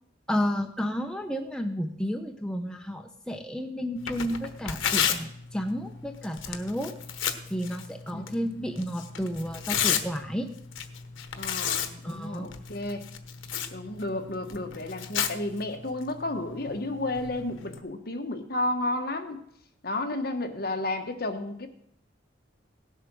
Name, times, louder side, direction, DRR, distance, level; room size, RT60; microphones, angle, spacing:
voice 1, 0.3-6.9 7.5-10.5 12.0-12.5, equal, 5° left, 4 dB, 0.8 m, -32 dB
Tearing, 4.0-17.8, left 8 dB, 80° left, 1.1 m, -34 dB
voice 2, 11.3-13.0 13.7-19.4 19.8-21.7, left 2 dB, 50° left, 6 dB, 1.4 m, -32 dB
17.5 x 8.1 x 6.3 m, 0.73 s
head